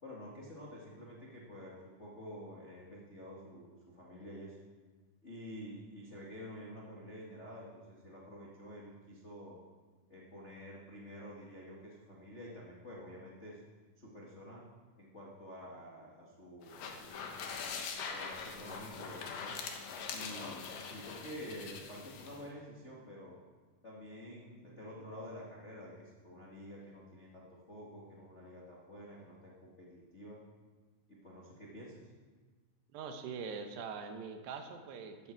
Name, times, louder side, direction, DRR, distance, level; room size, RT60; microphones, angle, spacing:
voice 1, 0.0-4.5 5.2-9.6 10.1-13.6 14.0-14.6 15.0-17.3 18.0-19.5 20.1-23.4 23.8-30.4 31.1-32.0, equal, 85° left, -5 dB, 0.6 m, -49 dB
sound 1, 16.6-22.4, left 5 dB, 65° left, 2.4 m, -43 dB
voice 2, 32.9-35.3, right 5 dB, 80° right, 6 dB, 3.2 m, -43 dB
15.0 x 12.0 x 4.6 m, 1.4 s
omnidirectional pair, 5.0 m